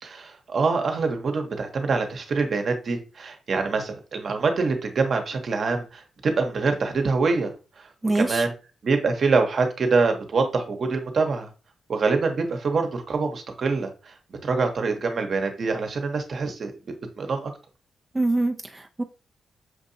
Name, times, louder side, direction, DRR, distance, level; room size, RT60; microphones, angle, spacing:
voice 1, 0.0-7.5 7.8-7.9 8.1-8.5 8.8-11.5 11.9-14.1 14.4-16.7 17.2-17.5, right 4 dB, 60° right, 0.9 m, -25 dB
voice 2, 8.0-8.4 18.1-19.0, right 2 dB, 20° right, 0.4 m, -24 dB
6.0 x 2.7 x 2.7 m
cardioid pair, 60°, 0 cm